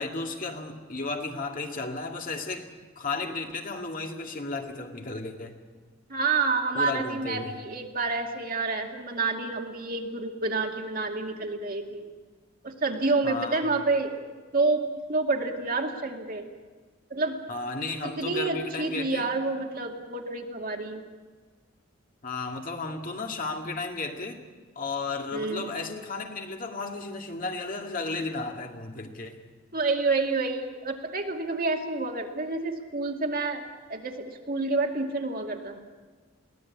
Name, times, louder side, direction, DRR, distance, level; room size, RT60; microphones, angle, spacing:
voice 1, 0.0-2.7 3.0-5.6 6.7-7.6 13.2-13.6 17.5-19.3 22.2-24.4 24.8-29.4, left 3 dB, 40° left, 3 dB, 2.1 m, -34 dB
voice 2, 6.1-12.1 12.6-14.1 14.5-16.4 17.1-17.4 18.0-21.0 25.3-25.6 29.7-33.6 33.9-35.8, right 3 dB, 45° right, 2 dB, 2.2 m, -28 dB
22.5 x 17.0 x 8.6 m, 1.5 s
head